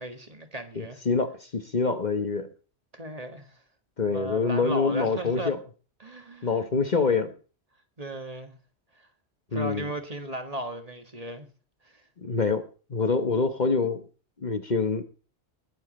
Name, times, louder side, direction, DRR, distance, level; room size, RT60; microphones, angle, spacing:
voice 1, 0.0-1.0 2.9-3.5 4.1-5.5 6.0-6.5 8.0-8.6 9.0-9.1 9.5-11.5 11.9-12.0, right 1 dB, 35° right, 1.9 m, -36 dB
voice 2, 0.8-2.5 4.0-5.6 6.4-7.3 9.5-9.9 12.2-14.0 14.4-15.0, left 4 dB, 45° left, 1.2 m, -26 dB
21.0 x 7.3 x 4.2 m
omnidirectional pair, 1.1 m